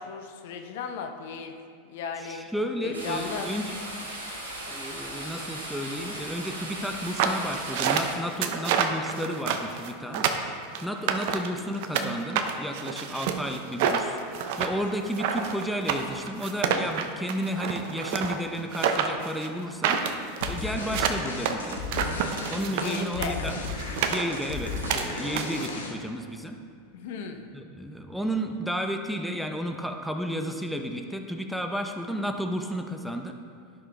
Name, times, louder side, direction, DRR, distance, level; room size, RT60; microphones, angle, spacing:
voice 1, 0.0-1.6 1.9-2.5 2.8-3.5 22.8-23.4 26.9-27.5, left 5 dB, 65° left, 5 dB, 0.7 m, -35 dB
voice 2, 2.2-3.8 4.7-10.3 10.8-14.2 14.6-20.0 20.5-23.6 24.1-26.6 27.5-33.3, equal, ahead, 4 dB, 0.7 m, -32 dB
sound 1, 2.9-8.1, right 1 dB, 90° right, 2.0 m, -37 dB
sound 2, 7.0-12.1 12.4-25.7, right 7 dB, 60° right, 0.6 m, -28 dB
sound 3, 20.4-26.2, left 4 dB, 85° left, 1.1 m, -35 dB
11.0 x 6.0 x 3.4 m, 2.2 s
hypercardioid pair, 90°, 0 cm